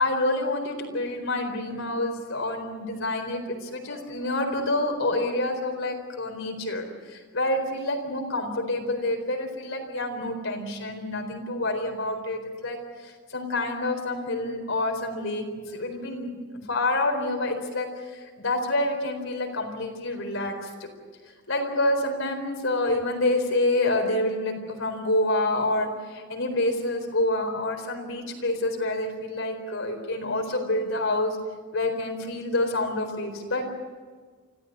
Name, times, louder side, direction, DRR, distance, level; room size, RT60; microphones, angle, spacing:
voice 1, 0.0-16.3 16.7-20.9 21.5-31.4 31.7-33.6, left 2 dB, 70° left, 3 dB, 4.3 m, -27 dB
25.5 x 15.5 x 9.5 m, 1.5 s
head